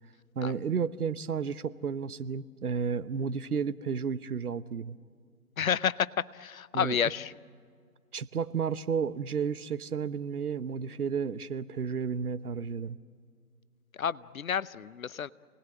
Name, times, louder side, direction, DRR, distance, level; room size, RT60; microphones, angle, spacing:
voice 1, 0.3-5.0 6.7-7.0 8.1-13.0, right 6 dB, 70° right, 15 dB, 1.0 m, -32 dB
voice 2, 5.6-6.1 6.3-7.3 14.0-15.3, left 8 dB, 60° left, 18 dB, 0.7 m, -30 dB
28.0 x 19.5 x 7.5 m, 2.1 s
figure-of-eight pair, 150°, 47 cm